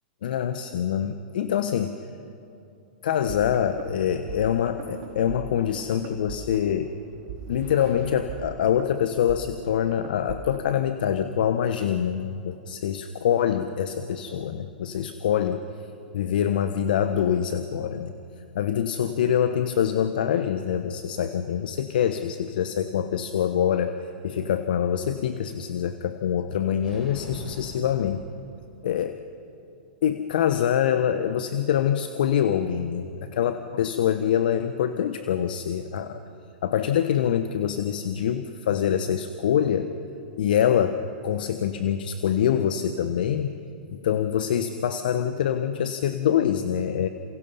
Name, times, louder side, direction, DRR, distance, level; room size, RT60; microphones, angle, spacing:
voice 1, 0.2-2.1 3.0-6.9 7.5-15.6 16.1-18.1 18.5-23.9 24.2-28.2 28.8-29.2 30.0-36.2 36.6-39.9 40.4-43.5 43.9-47.1, left 9 dB, 65° left, 9 dB, 1.2 m, -25 dB
sound 1, 3.3-10.8, right 7 dB, 50° right, 3.3 m, -41 dB
sound 2, 26.8-29.0, equal, 5° right, 7.5 m, -44 dB
29.0 x 28.0 x 5.6 m, 2.8 s
hypercardioid pair, 110°, 5 cm